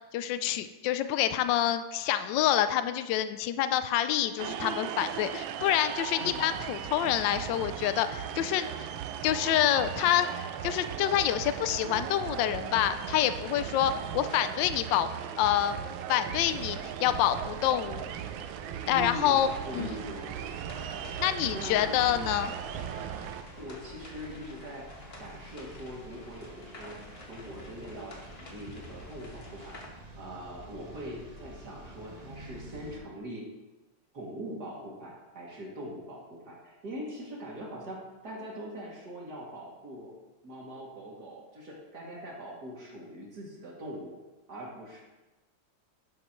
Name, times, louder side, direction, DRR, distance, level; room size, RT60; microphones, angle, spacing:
voice 1, 0.1-8.9 9.2-15.1 15.4-15.8 16.1-18.0 18.9-20.0 21.2-22.5, left 11 dB, 75° left, 11 dB, 1.2 m, -27 dB
sound 1, 4.4-23.4, right 9 dB, 85° right, 1.4 m, -38 dB
sound 2, 16.4-33.0, right 1 dB, 25° right, 1.0 m, -48 dB
voice 2, 18.9-20.2 21.5-22.0 23.6-24.9 25.2-27.0 27.2-29.8 30.2-33.4 34.1-40.2 40.4-44.2 44.5-45.0, equal, 55° right, -4 dB, 3.1 m, -42 dB
sound 3, 19.3-29.9, left 2 dB, 35° left, 1.5 m, -51 dB
11.0 x 10.5 x 3.1 m, 1.1 s
omnidirectional pair, 2.1 m